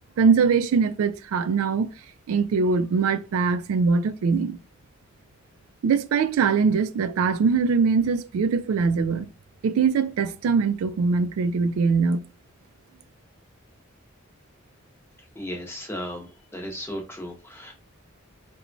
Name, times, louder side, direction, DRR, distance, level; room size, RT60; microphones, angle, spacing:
voice 1, 0.2-1.9 2.3-4.6 5.8-9.3 9.6-12.2, right 5 dB, 80° right, 0.3 m, -22 dB
voice 2, 15.4-16.3 16.5-17.7, equal, 10° left, 0.6 m, -35 dB
2.9 x 2.2 x 2.6 m
head